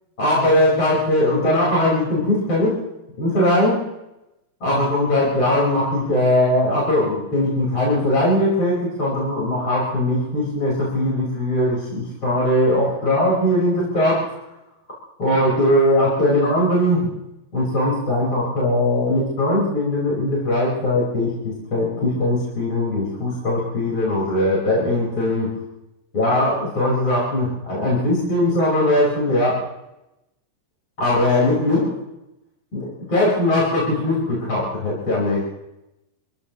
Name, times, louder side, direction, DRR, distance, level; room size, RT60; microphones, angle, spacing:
voice 1, 0.2-2.8 3.2-3.9 4.6-14.4 15.2-17.1 17.5-25.5 26.1-29.7 31.0-32.0 32.7-35.5, left 1 dB, 25° left, -6 dB, 5.2 m, -20 dB
27.0 x 16.5 x 3.1 m, 0.90 s
omnidirectional pair, 5.7 m